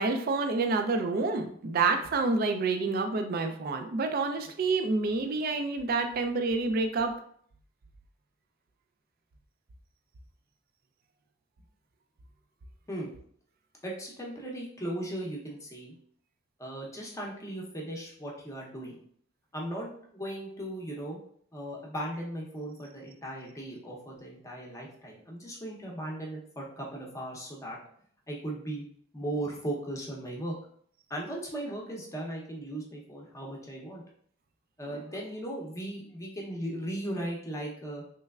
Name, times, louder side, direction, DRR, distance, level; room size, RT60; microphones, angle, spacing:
voice 1, 0.0-7.1, right 3 dB, 50° right, 7 dB, 0.4 m, -28 dB
voice 2, 13.8-15.9 16.6-19.0 19.5-21.2 21.5-27.8 28.3-28.8 29.1-30.5 31.1-34.0 34.8-38.0, right 1 dB, 15° left, -2 dB, 0.7 m, -37 dB
3.3 x 3.1 x 2.3 m, 0.62 s
head